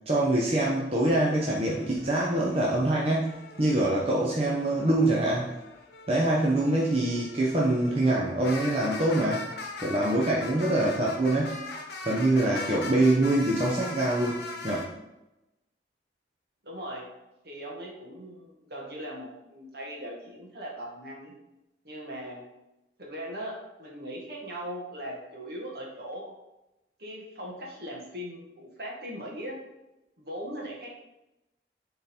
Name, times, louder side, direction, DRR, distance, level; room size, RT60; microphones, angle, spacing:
voice 1, 0.1-5.5 6.1-9.5 9.8-11.5 12.0-14.9, right 1 dB, 35° right, -4 dB, 0.8 m, -25 dB
sound 1, 1.0-3.9 4.4-14.9, left 3 dB, 65° left, 1.0 m, -41 dB
voice 2, 16.6-17.1 17.4-21.3 21.8-22.4 23.0-26.3 27.0-29.6 30.2-30.9, equal, 60° right, -2 dB, 1.7 m, -39 dB
7.5 x 3.9 x 4.4 m, 0.94 s
head